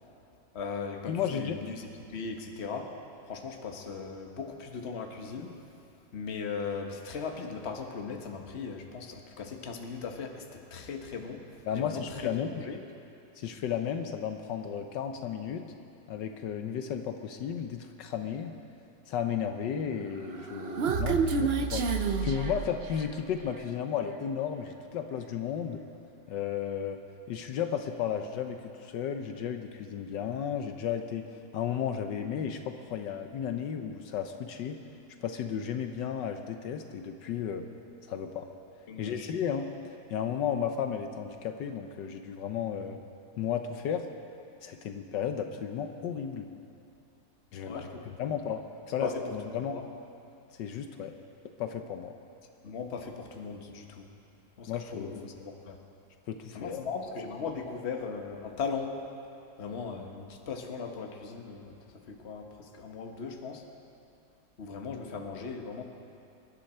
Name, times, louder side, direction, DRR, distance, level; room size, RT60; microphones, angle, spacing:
voice 1, 0.5-2.9 3.3-5.5 6.1-11.4 11.7-12.8 38.9-39.3 47.6-48.0 49.0-49.8 52.6-54.0 54.6-55.8 56.5-59.0 59.6-61.8 62.1-63.6 64.6-65.8, left 5 dB, 40° left, 3 dB, 1.3 m, -38 dB
voice 2, 1.1-1.6 11.7-12.6 13.4-15.6 16.1-18.5 19.1-21.8 22.2-25.8 26.3-27.0 27.3-31.3 31.5-34.8 35.2-37.6 38.0-38.5 39.0-39.7 40.1-43.0 43.4-44.0 44.6-46.5 47.5-47.9 48.2-48.6 48.9-49.8 50.6-51.1 51.6-52.1 54.7-55.2 56.3-56.8, left 8 dB, 75° left, 6 dB, 1.4 m, -33 dB
Human voice, 20.2-23.2, right 5 dB, 55° right, 0.7 m, -29 dB
25.5 x 11.5 x 4.3 m, 2.7 s
omnidirectional pair, 2.0 m